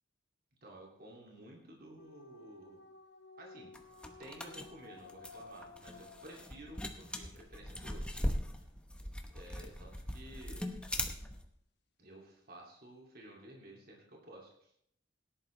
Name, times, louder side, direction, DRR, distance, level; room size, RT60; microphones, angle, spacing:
voice 1, 0.6-2.8 3.4-3.7 4.2-8.0 8.6-8.7 9.3-10.6 12.0-14.7, right 1 dB, 45° right, -1 dB, 2.5 m, -53 dB
sound 1, 2.0-7.2, left 3 dB, 55° left, 1.1 m, -55 dB
sound 2, 3.7-11.5, left 1 dB, 5° left, 0.9 m, -40 dB
17.5 x 11.0 x 3.3 m, 0.71 s
head